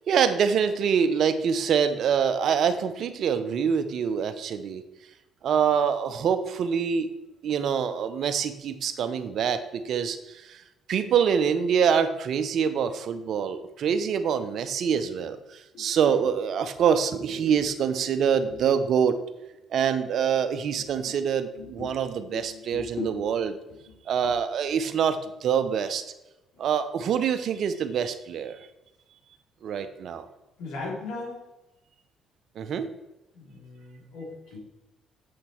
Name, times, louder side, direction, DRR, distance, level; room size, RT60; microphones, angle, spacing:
voice 1, 0.1-4.8 5.4-7.1 7.4-10.2 10.5-10.6 10.9-15.4 15.8-19.2 19.7-23.5 24.1-26.0 26.6-28.6 29.6-30.2 32.6-32.9, right 7 dB, 65° right, 10 dB, 0.8 m, -25 dB
voice 2, 15.7-16.1 18.5-18.6 20.7-21.2 21.6-23.3 23.7-24.0 24.2-24.3 30.6-31.4 33.3-34.6, left 3 dB, 80° left, -3 dB, 3.5 m, -39 dB
7.8 x 7.3 x 4.5 m, 0.99 s
supercardioid pair, 65°, 0 cm